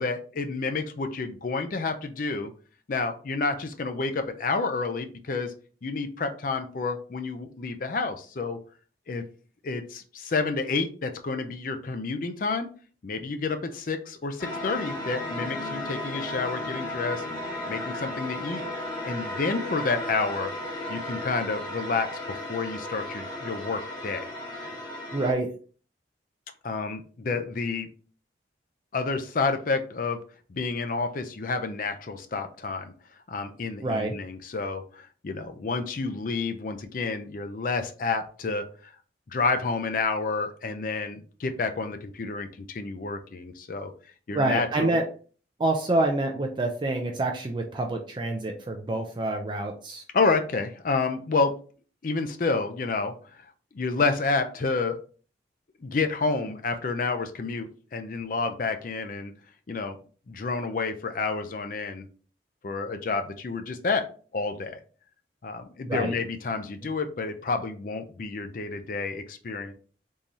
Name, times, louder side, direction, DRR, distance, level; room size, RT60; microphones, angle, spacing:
voice 1, 0.0-2.5 2.9-5.5 5.8-8.6 9.1-9.2 9.6-12.7 13.0-17.2 17.7-18.6 19.0-20.5 20.9-24.3 26.6-27.9 28.9-30.2 30.5-32.9 33.3-38.6 39.3-43.9 44.3-45.0 50.1-51.5 52.0-53.1 53.7-55.0 55.8-59.3 59.7-60.0 60.3-62.0 62.6-64.0 64.3-64.8 65.4-69.7, left 4 dB, 45° left, 7 dB, 0.4 m, -29 dB
sound 1, 14.4-25.3, left 1 dB, 25° left, 1.0 m, -34 dB
voice 2, 25.1-25.5 33.8-34.2 44.3-45.1 45.6-50.0 65.9-66.2, right 2 dB, 25° right, 3 dB, 0.3 m, -27 dB
3.7 x 2.6 x 3.0 m, 0.40 s
head